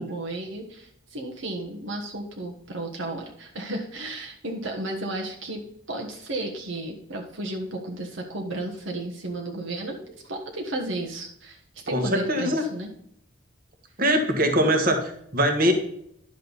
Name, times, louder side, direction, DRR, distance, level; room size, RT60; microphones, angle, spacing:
voice 1, 0.0-5.6 5.9-12.9, right 1 dB, 65° right, 1 dB, 1.3 m, -33 dB
voice 2, 11.9-12.6 14.0-15.7, equal, 40° right, 4 dB, 1.5 m, -22 dB
10.5 x 6.6 x 4.0 m, 0.70 s
head